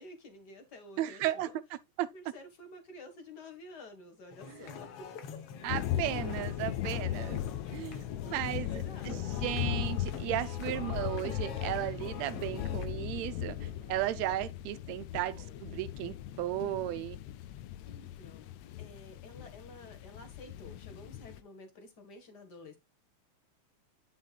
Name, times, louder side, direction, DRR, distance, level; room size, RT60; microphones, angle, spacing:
voice 1, 0.0-1.6 2.1-5.2 8.6-9.6 15.3-15.9 17.8-22.8, left 2 dB, 40° left, 1.8 m, -51 dB
voice 2, 1.0-1.6 2.0-2.1 4.5-4.7 5.6-7.4 7.7-17.2, right 14 dB, 75° right, 1.8 m, -35 dB
sound 1, 4.3-12.9, left 7 dB, 60° left, 1.7 m, -45 dB
sound 2, 5.7-21.4, left 12 dB, 80° left, 1.5 m, -38 dB
sound 3, 8.8-14.3, right 2 dB, 45° right, 2.5 m, -57 dB
10.0 x 6.0 x 2.4 m
omnidirectional pair, 3.4 m